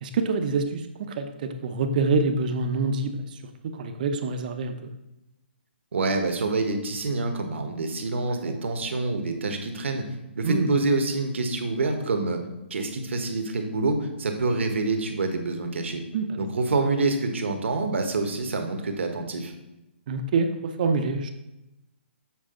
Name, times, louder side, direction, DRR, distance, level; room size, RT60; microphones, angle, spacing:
voice 1, 0.0-3.3 3.6-4.7 8.5-8.6 10.4-10.7 16.1-16.4 20.1-21.3, right 4 dB, 45° right, 8 dB, 0.7 m, -26 dB
voice 2, 5.9-10.0 10.4-12.4 12.7-16.0 16.4-19.5, right 3 dB, 80° right, 5 dB, 1.2 m, -26 dB
7.4 x 5.2 x 3.8 m, 0.94 s
hypercardioid pair, 160°, 6 cm